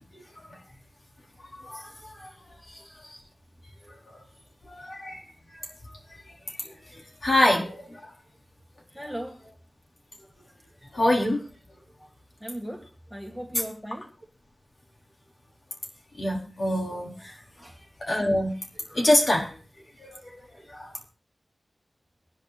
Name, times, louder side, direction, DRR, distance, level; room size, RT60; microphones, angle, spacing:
voice 1, 1.5-2.3 2.7-3.2 4.6-5.2 6.5-8.1 10.9-11.4 16.1-17.3 18.0-18.6 18.9-19.6 20.0-20.9, left 1 dB, 55° left, -1 dB, 4.4 m, -26 dB
voice 2, 8.9-9.4 12.4-14.1 17.6-17.8, right 1 dB, 5° left, 0 dB, 2.2 m, -37 dB
24.0 x 10.5 x 2.5 m, 0.36 s
wide cardioid pair, 80°, 0 cm